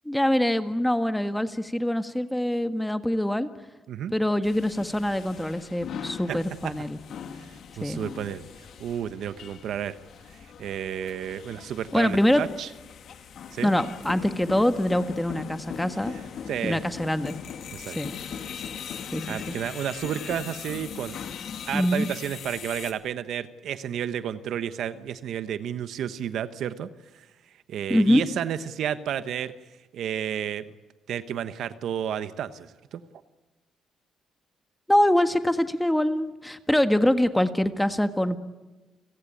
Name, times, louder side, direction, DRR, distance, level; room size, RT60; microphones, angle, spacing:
voice 1, 0.0-3.5 4.1-7.0 7.8-8.0 11.9-12.4 13.6-16.1 16.6-17.3 17.9-18.1 19.1-19.5 21.7-22.1 27.9-28.2 34.9-38.4, left 1 dB, 5° left, 9 dB, 1.7 m, -24 dB
sound 1, 4.4-22.9, left 7 dB, 65° left, 2.1 m, -40 dB
voice 2, 7.8-8.4 8.8-10.0 10.6-12.7 13.5-13.7 16.5-16.8 17.7-18.0 19.3-21.2 21.7-26.9 27.1-27.3 27.7-29.5 29.9-30.6 31.1-33.0, right 9 dB, 75° right, 12 dB, 1.2 m, -31 dB
29.5 x 17.0 x 9.1 m, 1.2 s
cardioid pair, 90°, 0 cm